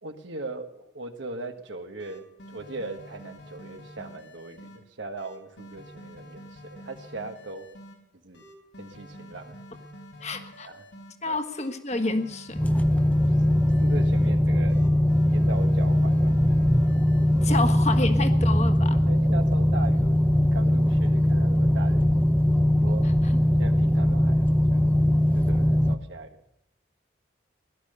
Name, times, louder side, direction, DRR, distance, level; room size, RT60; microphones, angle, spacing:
voice 1, 0.0-7.7 8.2-8.4 8.8-9.6 10.6-10.8 11.3-11.4 13.3-14.8 15.3-16.3 17.3-17.6 19.1-20.2 20.5-22.2 22.8-23.1 23.6-24.8 25.3-26.4, right 3 dB, 85° right, 5 dB, 1.5 m, -39 dB
sound 1, 1.6-1.7 2.0-4.8 5.2-7.9 8.3-11.1 11.5-14.3 14.7-17.5 17.9-18.3, equal, 85° left, 4.0 m, -47 dB
voice 2, 10.2-10.7 11.2-12.6 17.4-19.0, left 2 dB, 40° left, 7 dB, 1.4 m, -29 dB
sound 2, 12.5-25.9, left 1 dB, 10° left, 0.6 m, -21 dB
17.0 x 12.0 x 6.8 m, 0.84 s
head